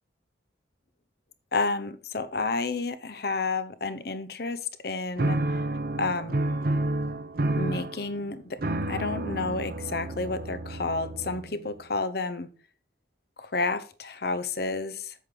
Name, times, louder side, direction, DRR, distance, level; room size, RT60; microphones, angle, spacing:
voice 1, 1.5-5.6 6.0-6.3 7.5-8.6 8.9-12.5 13.4-15.1, left 3 dB, 55° left, 13 dB, 0.8 m, -30 dB
sound 1, 5.2-11.7, right 2 dB, 50° right, 0.8 m, -30 dB
8.3 x 7.6 x 3.8 m, 0.39 s
head